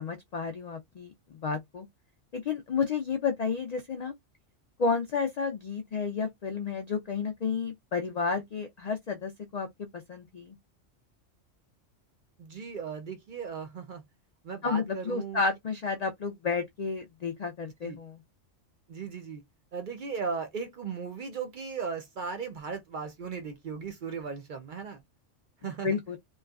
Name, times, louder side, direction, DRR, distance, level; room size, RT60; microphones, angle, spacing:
voice 1, 0.0-1.9 2.3-4.2 4.8-10.6 14.6-18.2 25.8-26.2, left 5 dB, 85° left, 0.3 m, -31 dB
voice 2, 12.4-14.0 14.4-15.4 17.8-18.0 18.9-19.4 19.7-25.0 25.6-26.0, right 5 dB, 55° right, 0.6 m, -37 dB
3.0 x 2.3 x 2.3 m
omnidirectional pair, 1.3 m